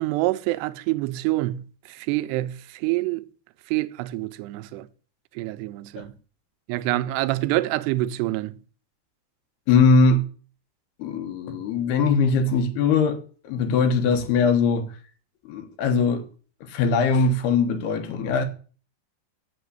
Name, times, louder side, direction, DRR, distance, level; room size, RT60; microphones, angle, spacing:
voice 1, 0.0-3.3 3.7-4.9 5.3-6.1 6.7-8.6, right 17 dB, 80° right, 2.7 m, -26 dB
voice 2, 9.7-10.2 11.0-13.2 13.4-14.9 15.5-16.2 16.7-18.5, left 4 dB, 70° left, 3.3 m, -21 dB
8.7 x 7.1 x 8.0 m
omnidirectional pair, 5.0 m